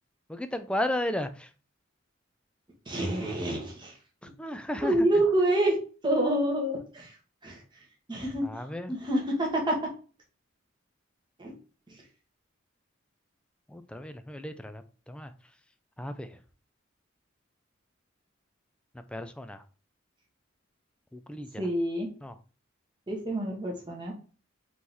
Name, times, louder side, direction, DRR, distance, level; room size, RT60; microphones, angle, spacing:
voice 1, 0.3-1.5 4.4-5.1 8.4-8.9 13.7-15.3 16.0-16.4 19.1-19.6 21.1-21.7 22.2-22.4, left 1 dB, 5° left, 0.3 m, -34 dB
voice 2, 2.9-3.9 4.2-4.3 4.8-5.8 6.0-7.1 7.4-7.6 8.1-8.4 8.9-9.9 11.4-11.5 21.6-22.1 23.1-24.1, right 1 dB, 25° right, 1.3 m, -27 dB
3.8 x 3.0 x 3.9 m
head